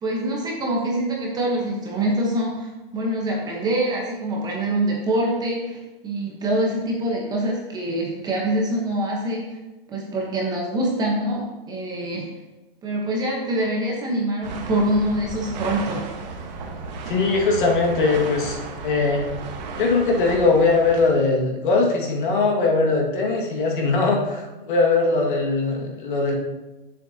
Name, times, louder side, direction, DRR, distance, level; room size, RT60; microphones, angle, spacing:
voice 1, 0.0-9.6 9.9-12.3 12.8-16.0, right 1 dB, 15° right, -2 dB, 1.1 m, -25 dB
sound 1, 14.4-21.1, right 4 dB, 45° right, 1.4 m, -34 dB
voice 2, 17.1-18.6 18.8-19.3 19.8-26.3, left 3 dB, 55° left, 0 dB, 2.0 m, -20 dB
9.9 x 7.2 x 2.9 m, 1.1 s
hypercardioid pair, 155°, 30 cm